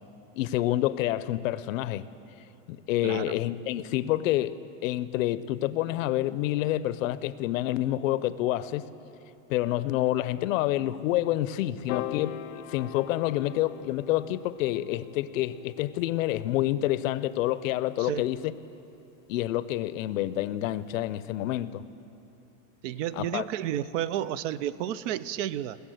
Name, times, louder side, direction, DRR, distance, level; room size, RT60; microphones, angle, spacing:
voice 1, 0.3-2.0 2.7-8.9 9.5-18.5 19.3-21.8 23.2-23.4, left 14 dB, 90° left, 16 dB, 0.6 m, -28 dB
voice 2, 3.0-3.4 18.0-18.3 22.8-25.8, right 11 dB, 70° right, 17 dB, 0.6 m, -31 dB
Piano, 11.9-18.3, left 13 dB, 45° left, 0.5 m, -42 dB
20.0 x 7.1 x 7.8 m, 2.9 s
supercardioid pair, 145°, 39 cm